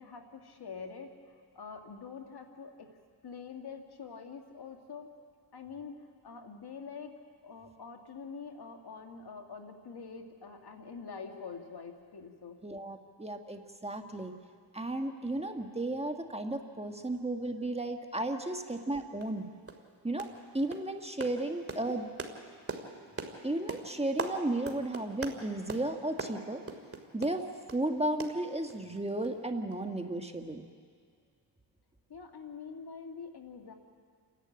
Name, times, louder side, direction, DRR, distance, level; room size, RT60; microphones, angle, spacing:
voice 1, 0.0-2.9 3.2-5.1 5.5-7.2 7.4-12.6 32.1-33.7, left 5 dB, 60° left, 4 dB, 2.3 m, -45 dB
voice 2, 12.6-14.3 14.7-19.5 20.0-20.3 20.5-22.1 23.4-26.6 27.1-27.4 27.7-30.7, right 2 dB, 15° right, 5 dB, 1.6 m, -34 dB
sound 1, 18.7-18.8 19.2-19.4 19.7-19.9 20.2-20.4 20.7-27.8 28.2-29.0 29.2-29.4 29.7-29.8, right 3 dB, 30° right, 2.5 m, -42 dB
29.5 x 11.5 x 8.8 m, 2.1 s
cardioid pair, 65°, 43 cm